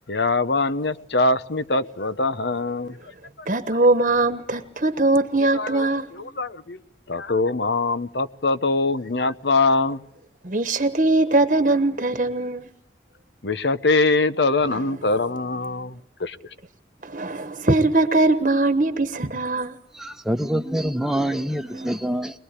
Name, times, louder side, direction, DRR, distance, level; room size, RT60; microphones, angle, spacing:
voice 1, 0.1-3.0 5.5-5.9 6.1-6.8 7.1-10.0 13.4-16.4, left 3 dB, 70° left, 1.0 m, -23 dB
voice 2, 3.5-6.1 10.4-12.7 17.0-19.7 21.7-22.0, right 2 dB, 45° right, 1.3 m, -21 dB
voice 3, 20.0-22.4, right 1 dB, ahead, 1.1 m, -25 dB
23.0 x 21.5 x 8.3 m
head